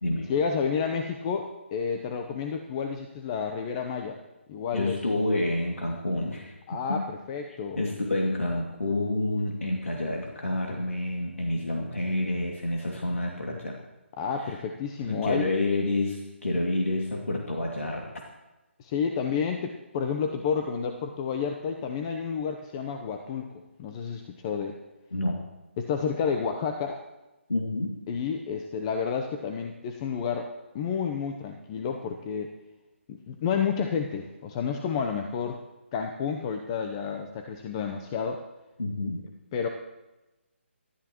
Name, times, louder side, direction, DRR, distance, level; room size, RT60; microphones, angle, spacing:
voice 1, 0.3-4.2 4.5-5.0 6.7-7.8 14.2-15.5 18.8-23.5 23.8-24.8 25.8-27.0 28.1-30.5 30.7-32.5 33.1-35.6 35.9-38.4 39.5-39.7, left 6 dB, 25° left, 5 dB, 0.8 m, -30 dB
voice 2, 4.7-6.5 6.9-7.0 7.8-13.8 14.4-14.6 15.0-18.1 25.1-25.4 27.5-27.9 38.8-39.2, left 2 dB, 90° left, -1 dB, 2.3 m, -28 dB
23.0 x 12.5 x 3.0 m, 1.1 s
figure-of-eight pair, 155°, 7 cm